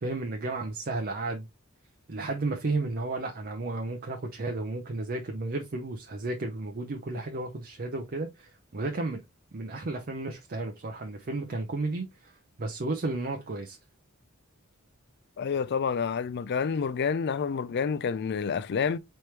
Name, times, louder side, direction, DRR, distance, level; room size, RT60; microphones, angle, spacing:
voice 1, 0.0-1.5 2.1-9.2 9.5-13.8, right 2 dB, 45° right, 0.6 m, -33 dB
voice 2, 15.4-19.0, left 6 dB, 50° left, 0.4 m, -28 dB
4.4 x 3.1 x 3.2 m
head